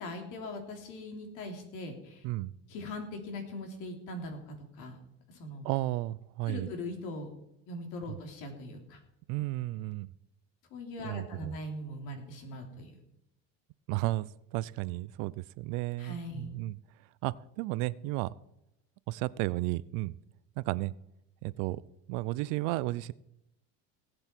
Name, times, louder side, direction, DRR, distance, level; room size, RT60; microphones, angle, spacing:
voice 1, 0.0-2.2 2.7-5.0 5.3-5.7 6.4-7.3 7.7-9.0 10.7-12.9 16.0-16.5, left 1 dB, 70° left, 3 dB, 3.3 m, -41 dB
voice 2, 5.6-6.7 8.1-8.2 9.3-10.1 11.0-11.5 13.9-16.8 17.2-18.3 19.1-20.2 20.6-20.9 21.4-21.8 22.1-23.1, right 18 dB, 65° right, 20 dB, 0.6 m, -33 dB
18.0 x 8.1 x 4.5 m, 0.82 s
cardioid pair, 130°, 32 cm